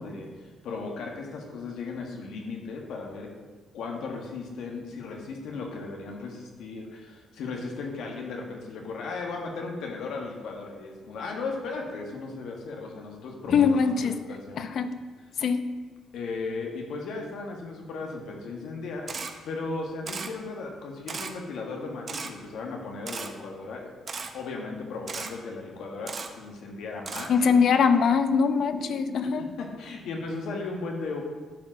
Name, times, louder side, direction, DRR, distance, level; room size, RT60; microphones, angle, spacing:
voice 1, 0.0-3.3 3.7-13.6 14.0-14.7 16.1-23.9 24.3-27.3 29.2-31.2, left 3 dB, 80° left, 1 dB, 1.5 m, -36 dB
voice 2, 13.5-14.2 14.6-14.9 15.4-15.6 27.3-29.5, left 6 dB, 60° left, 10 dB, 0.7 m, -22 dB
Camera, 19.1-19.3 20.1-20.3 21.1-21.3 22.1-22.3 23.1-23.3 24.1-24.3 25.1-25.3 26.1-26.3 27.1-27.3, right 5 dB, 40° right, 0.9 m, -35 dB
11.0 x 4.4 x 6.3 m, 1.4 s
cardioid pair, 90°, 0 cm